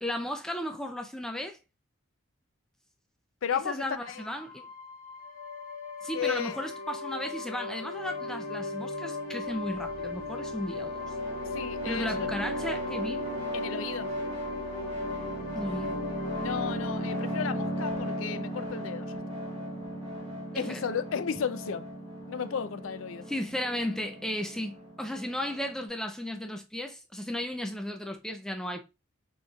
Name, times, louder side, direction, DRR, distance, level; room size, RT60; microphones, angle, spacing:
voice 1, 0.0-1.6 3.5-4.7 6.0-11.0 11.8-13.3 15.6-16.0 20.5-20.8 23.2-28.8, left 1 dB, 5° left, 0.4 m, -35 dB
voice 2, 3.4-4.2 6.1-6.6 11.5-12.3 13.5-14.1 16.4-19.1 20.5-21.9 22.3-23.2, left 7 dB, 85° left, 0.5 m, -33 dB
sound 1, 4.0-18.5, left 3 dB, 45° left, 0.8 m, -38 dB
sound 2, 10.4-25.9, right 1 dB, 25° right, 2.9 m, -37 dB
6.5 x 3.1 x 2.3 m
head